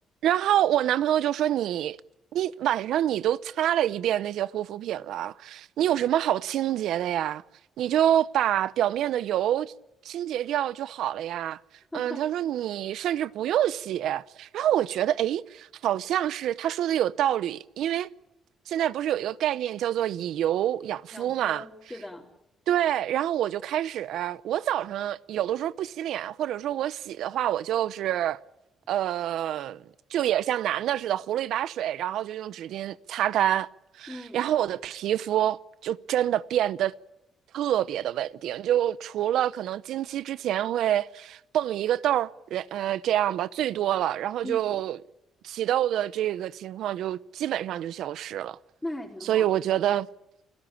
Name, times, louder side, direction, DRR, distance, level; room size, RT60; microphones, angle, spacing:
voice 1, 0.2-2.0 2.3-7.4 7.8-9.7 10.0-11.6 11.9-18.1 18.7-21.6 22.7-28.4 28.9-29.8 30.1-33.7 34.0-36.9 37.5-45.0 45.4-48.6 49.2-50.1, right 11 dB, 80° right, 0.8 m, -27 dB
voice 2, 11.9-12.2 21.1-22.3 34.1-34.4 44.4-44.8 48.8-49.5, left 1 dB, 10° left, 4.1 m, -38 dB
29.5 x 17.0 x 8.7 m
cardioid pair, 90°, 0 cm